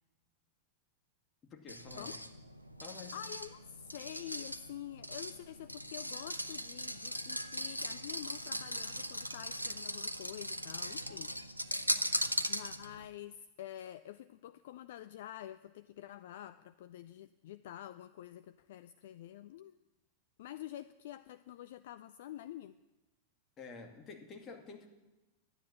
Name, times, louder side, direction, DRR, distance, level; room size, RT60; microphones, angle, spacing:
voice 1, 1.5-2.2 2.8-3.2 23.6-24.9, left 4 dB, 25° left, 2 dB, 2.4 m, -49 dB
sound 1, 1.7-13.1, equal, 90° right, 0.6 m, -39 dB
voice 2, 3.1-12.0 12.5-19.7 20.4-22.7, left 12 dB, 55° left, 13 dB, 0.4 m, -48 dB
12.5 x 9.9 x 8.8 m, 1.1 s
figure-of-eight pair, 90°, 0 cm